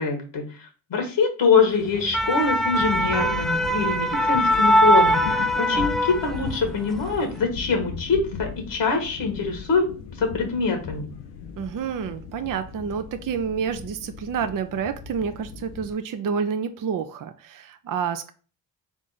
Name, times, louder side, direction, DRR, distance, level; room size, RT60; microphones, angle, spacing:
voice 1, 0.0-9.9 10.2-11.1, left 4 dB, 60° left, 4 dB, 1.5 m, -24 dB
sound 1, 1.9-6.7 7.0-7.2, equal, ahead, 0.4 m, -21 dB
sound 2, 2.8-15.9, left 6 dB, 90° left, 0.8 m, -37 dB
voice 2, 5.6-5.9 11.6-18.3, right 6 dB, 40° right, 9 dB, 0.6 m, -29 dB
3.7 x 3.6 x 3.9 m, 0.38 s
hypercardioid pair, 45°, 48 cm